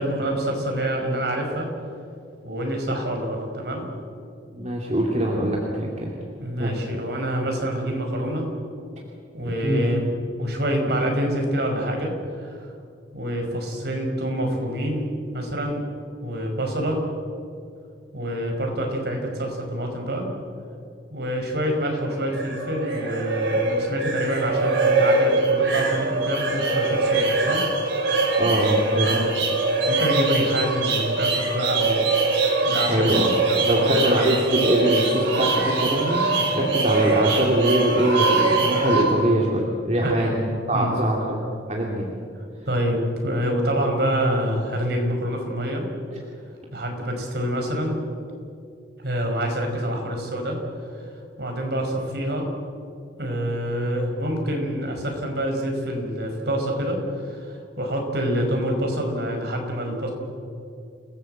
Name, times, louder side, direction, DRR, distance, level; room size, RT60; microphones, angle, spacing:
voice 1, 0.0-1.7 2.4-3.9 6.4-8.5 9.3-10.1 10.4-12.1 12.4-12.7 13.1-15.1 15.3-15.8 16.2-17.0 18.1-20.3 21.1-27.6 29.0-29.3 29.9-32.1 32.6-34.2 36.3-36.5 40.0-40.3 40.7-41.0 42.6-45.9 46.7-48.0 49.0-50.6 50.9-51.0 51.4-52.5 53.2-60.1, equal, 60° right, 2 dB, 5.3 m, -26 dB
voice 2, 4.5-6.1 6.6-6.7 9.4-9.9 28.4-29.1 32.9-33.3 33.7-36.2 36.5-41.4 41.7-42.1 46.1-46.2, right 1 dB, 35° right, -2 dB, 2.8 m, -23 dB
sound 1, 22.1-39.0, right 3 dB, 85° right, 5.8 m, -23 dB
29.0 x 18.5 x 7.9 m, 2.4 s
head